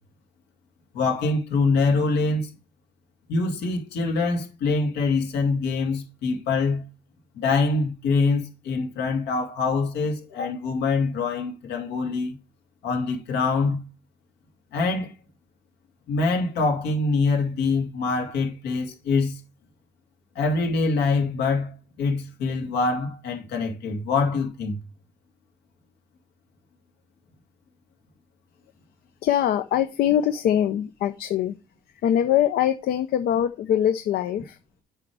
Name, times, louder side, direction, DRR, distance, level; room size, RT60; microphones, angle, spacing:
voice 1, 0.9-2.5 3.3-6.9 7.3-12.4 12.8-13.9 14.7-15.1 16.1-19.4 20.4-24.8, left 4 dB, 85° left, 2.4 m, -24 dB
voice 2, 29.2-31.6 31.9-34.6, left 10 dB, 65° left, 0.7 m, -23 dB
8.3 x 5.5 x 4.6 m
cardioid pair, 110°, 17 cm